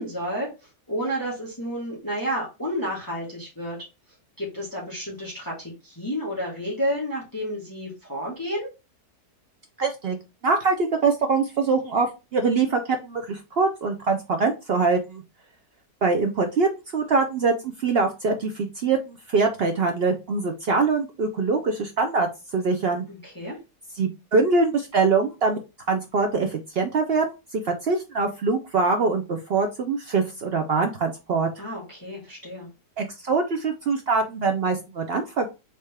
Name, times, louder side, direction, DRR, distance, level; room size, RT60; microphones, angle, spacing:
voice 1, 0.0-3.8 4.4-8.7 23.1-23.6 31.6-32.7, equal, 15° left, -4 dB, 1.4 m, -31 dB
voice 2, 9.8-10.2 10.4-15.2 16.0-17.5 17.8-22.3 22.5-23.0 24.0-25.6 25.9-31.5 33.0-35.5, right 4 dB, 80° right, 4 dB, 0.5 m, -23 dB
4.3 x 3.2 x 3.3 m, 0.27 s
omnidirectional pair, 1.7 m